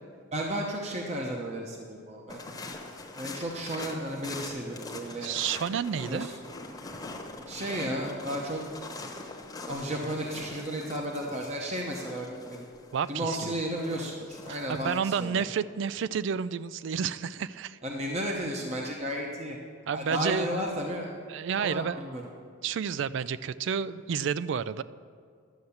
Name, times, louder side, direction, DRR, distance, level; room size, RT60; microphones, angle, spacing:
voice 1, 0.3-2.4 3.2-5.3 6.0-6.3 7.5-8.6 9.0-9.1 9.7-12.7 13.1-15.4 17.8-19.6 19.9-21.1 21.6-22.2, right 1 dB, 30° right, 0 dB, 0.8 m, -33 dB
sound 1, 2.3-15.0, left 2 dB, 20° left, 1.0 m, -43 dB
voice 2, 5.2-6.3 12.9-13.5 14.5-17.8 19.9-20.5 21.3-22.0 22.6-24.8, right 7 dB, 55° right, 16 dB, 0.3 m, -30 dB
11.5 x 7.8 x 7.0 m, 2.1 s
head